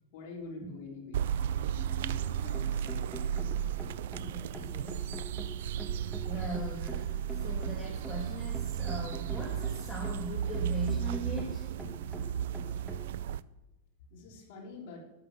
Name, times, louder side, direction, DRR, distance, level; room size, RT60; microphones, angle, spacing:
voice 1, 0.1-3.0 14.1-15.0, left 3 dB, 50° left, -1 dB, 3.3 m, -46 dB
sound 1, 1.1-13.4, right 9 dB, 70° right, 0.4 m, -34 dB
sound 2, 2.2-13.1, equal, 5° right, 1.3 m, -46 dB
voice 2, 4.1-5.0 6.3-11.7, equal, 15° left, -4 dB, 2.2 m, -40 dB
11.5 x 6.7 x 7.6 m, 1.0 s
supercardioid pair, 160°, 0 cm